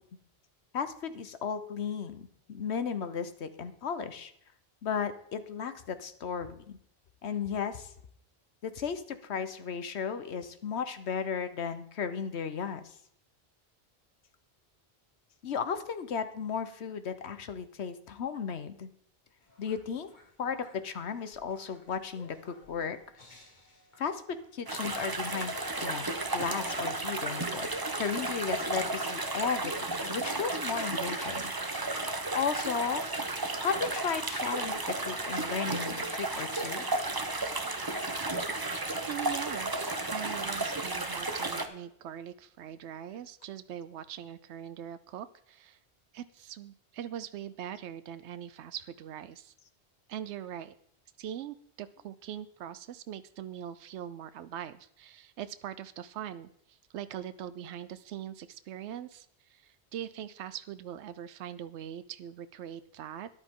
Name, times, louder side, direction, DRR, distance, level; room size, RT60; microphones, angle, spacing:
voice 1, 0.7-4.3 4.8-6.8 7.2-7.9 8.6-12.9 15.4-18.9 19.6-20.1 20.4-23.0 24.0-27.7 28.0-31.5 31.8-33.0 33.6-36.9 40.5-41.0, left 6 dB, 75° left, 11 dB, 1.2 m, -35 dB
sound 1, 19.4-32.6, left 1 dB, 45° left, 1.9 m, -56 dB
sound 2, 24.7-41.7, right 2 dB, 20° right, 0.8 m, -33 dB
voice 2, 39.0-45.8 46.1-49.5 50.1-50.7 51.2-63.3, right 10 dB, 90° right, 13 dB, 0.9 m, -42 dB
13.0 x 10.5 x 3.7 m, 0.66 s
omnidirectional pair, 1.1 m